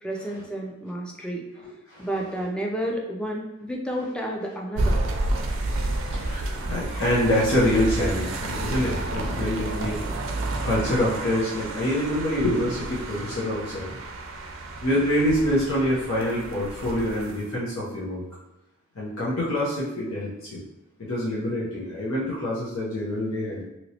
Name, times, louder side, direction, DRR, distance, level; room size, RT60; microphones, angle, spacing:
voice 1, 0.0-1.4 2.0-5.0, right 1 dB, 5° left, -1 dB, 0.4 m, -31 dB
sound 1, 4.8-17.5, right 2 dB, 65° right, 0.4 m, -30 dB
voice 2, 5.4-10.2 10.6-14.0 14.8-18.2 18.9-20.6 21.0-23.6, left 1 dB, 85° left, -7 dB, 0.8 m, -26 dB
3.0 x 2.9 x 2.8 m, 0.93 s
head